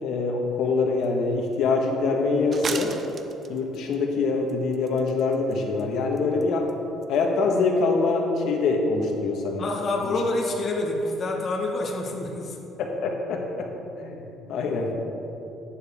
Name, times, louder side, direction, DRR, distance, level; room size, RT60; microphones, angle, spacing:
voice 1, 0.0-2.9 3.5-6.7 7.1-9.6 10.0-10.1 12.8-13.7 14.0-14.9, left 3 dB, 65° left, 1 dB, 1.5 m, -24 dB
sound 1, 1.0-1.1 1.5-1.6 2.5-4.0 4.5-5.5 5.8-5.9 6.2-6.4 6.7-6.8 7.0-7.1, right 5 dB, 35° right, 0.6 m, -35 dB
voice 2, 9.6-12.6, left 2 dB, 40° left, 0 dB, 1.6 m, -27 dB
11.0 x 9.3 x 3.7 m, 3.0 s
cardioid pair, 120°, 0 cm